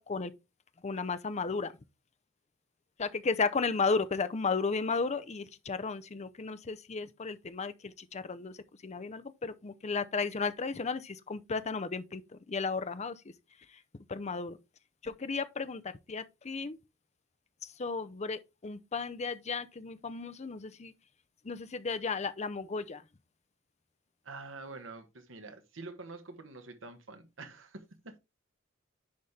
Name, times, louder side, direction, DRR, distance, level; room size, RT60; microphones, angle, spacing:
voice 1, 0.8-1.7 3.0-8.6 8.8-12.2 12.5-13.2 14.1-14.6 15.0-16.8 17.8-20.9 21.4-23.0, left 4 dB, 35° left, 0.6 m, -34 dB
voice 2, 24.2-28.2, right 3 dB, 70° right, 1.4 m, -46 dB
10.5 x 4.2 x 3.3 m
head